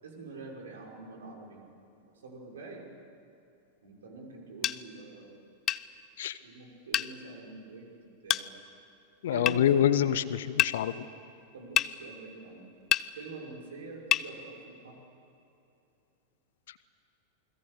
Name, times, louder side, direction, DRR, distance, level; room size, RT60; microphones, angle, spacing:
voice 1, 0.0-1.7 2.2-2.9 3.8-5.4 6.4-8.5 9.3-10.0 11.5-12.7 13.1-15.0, right 3 dB, 65° right, 0 dB, 5.7 m, -45 dB
sound 1, 4.6-4.8 5.7-5.8 6.9-7.1 8.3-8.5 9.5-9.6 10.6-10.8 11.8-11.9 12.9-13.1 14.1-14.3, left 12 dB, 30° left, 0.6 m, -26 dB
voice 2, 9.2-11.0, left 10 dB, 60° left, 15 dB, 1.0 m, -26 dB
28.5 x 21.5 x 8.2 m, 2.8 s
figure-of-eight pair, 90°, 0 cm